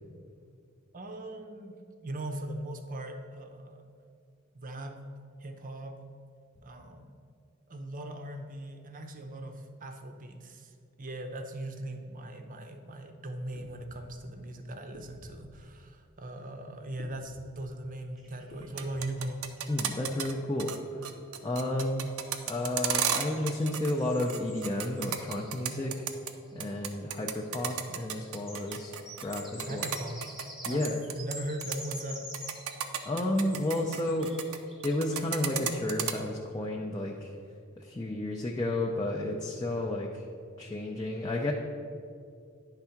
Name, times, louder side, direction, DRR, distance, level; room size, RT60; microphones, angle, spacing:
voice 1, 0.9-3.8 4.5-5.0 5.4-6.0 6.6-7.1 7.7-19.4 29.6-30.2 30.7-32.3, right 1 dB, 40° right, 6 dB, 0.7 m, -40 dB
sound 1, 13.6-14.1 14.9-15.5 17.0-17.5 18.5-19.2, left 2 dB, 60° left, 0.8 m, -51 dB
sound 2, 18.2-19.2 19.6-19.7 19.9-20.0 22.2-26.7 27.4-35.6, equal, ahead, 1.0 m, -48 dB
sound 3, 18.6-20.3 20.6-20.8 21.0-23.9 24.2-26.3 26.6-31.3 31.6-31.9 32.3-34.6 34.8-36.1, right 9 dB, 80° right, 0.6 m, -33 dB
voice 2, 19.7-21.0 21.4-22.1 22.5-25.9 26.5-29.0 29.2-29.8 30.6-31.0 33.0-34.3 34.8-37.3 37.8-40.2 40.6-41.5, left 1 dB, 20° left, -2 dB, 0.5 m, -31 dB
9.8 x 3.5 x 5.7 m, 2.3 s
head